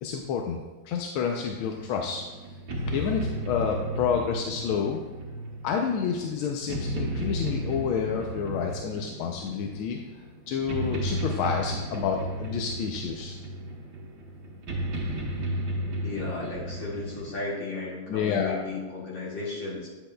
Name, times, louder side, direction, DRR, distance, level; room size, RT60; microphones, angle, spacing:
voice 1, 0.0-2.6 2.9-5.0 5.6-10.0 10.5-13.3 18.1-18.6, left 6 dB, 90° left, 1 dB, 1.5 m, -29 dB
sound 1, 1.7-17.4, right 1 dB, 55° right, 1.5 m, -34 dB
voice 2, 16.0-19.9, left 3 dB, 65° left, -6 dB, 2.8 m, -34 dB
8.9 x 7.6 x 2.2 m, 1.3 s
omnidirectional pair, 2.2 m